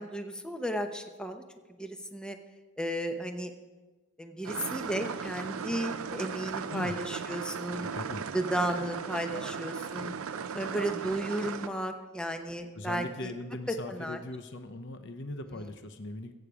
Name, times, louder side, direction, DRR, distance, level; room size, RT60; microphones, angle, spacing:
voice 1, 0.0-1.4 1.8-2.4 2.8-3.5 4.2-7.9 8.3-10.1 10.5-13.3 13.7-14.2 15.6-15.7, right 1 dB, 5° left, 5 dB, 0.9 m, -34 dB
sound 1, 4.4-11.7, right 6 dB, 80° right, 0.6 m, -37 dB
voice 2, 7.9-8.2 12.7-16.3, left 2 dB, 55° left, 8 dB, 0.9 m, -39 dB
21.5 x 8.7 x 5.0 m, 1.3 s
head